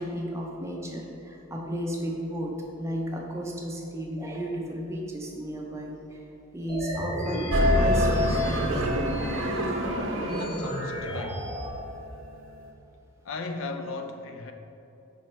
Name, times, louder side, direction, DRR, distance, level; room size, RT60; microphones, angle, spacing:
voice 1, 0.0-2.5 2.8-6.2 6.5-8.7, equal, 15° right, -1 dB, 0.5 m, -34 dB
sound 1, 6.7-11.7, equal, 10° left, 1.4 m, -32 dB
sound 2, 7.5-11.8, equal, 60° right, 0.6 m, -26 dB
voice 2, 10.1-11.5 13.2-14.5, left 3 dB, 70° left, 5 dB, 0.5 m, -36 dB
5.4 x 4.3 x 4.6 m, 2.8 s
head